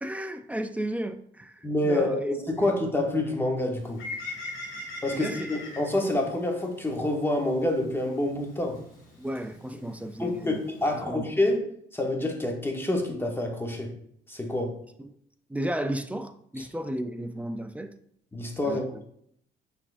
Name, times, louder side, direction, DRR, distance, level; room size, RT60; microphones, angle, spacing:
voice 1, 0.0-2.3 5.1-5.5 9.2-10.6 11.1-11.3 15.0-15.1 15.5-17.9 18.6-19.0, right 1 dB, 5° right, 0.3 m, -34 dB
voice 2, 1.6-4.0 5.0-8.8 9.7-9.8 10.2-13.9 14.3-14.7 18.3-19.0, left 1 dB, 10° left, 1.0 m, -27 dB
Bird, 3.7-11.0, left 2 dB, 80° left, 1.8 m, -43 dB
5.9 x 3.4 x 2.5 m
cardioid pair, 90°, 20 cm